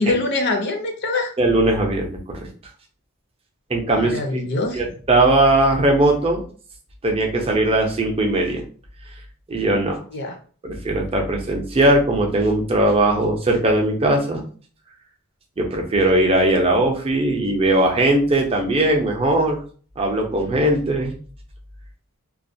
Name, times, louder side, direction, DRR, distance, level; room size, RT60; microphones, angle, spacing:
voice 1, 0.0-1.3 4.0-4.9 10.1-10.3, left 2 dB, 50° left, 4 dB, 0.5 m, -24 dB
voice 2, 1.4-2.5 3.7-4.4 4.7-6.4 7.0-8.6 9.5-10.0 10.6-14.4 15.6-19.6 20.0-21.1, right 1 dB, 25° right, 1 dB, 0.5 m, -19 dB
2.2 x 2.1 x 2.6 m, 0.42 s
head